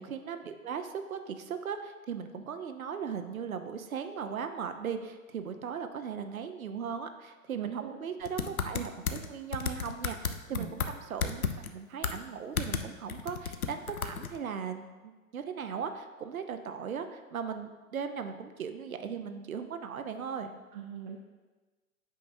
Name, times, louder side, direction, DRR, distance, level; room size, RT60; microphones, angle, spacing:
voice 1, 0.0-11.4 11.7-20.5, right 7 dB, 80° right, 8 dB, 0.7 m, -38 dB
voice 2, 7.5-8.0 10.5-10.7 20.7-21.2, right 9 dB, 35° right, 2 dB, 0.5 m, -40 dB
sound 1, 8.2-9.3 9.5-10.9 11.2-11.7 12.0-12.2 12.6-12.8 13.1-14.4, left 6 dB, 85° left, 0.6 m, -32 dB
8.3 x 5.6 x 2.7 m, 1.3 s
figure-of-eight pair, 115°, 42 cm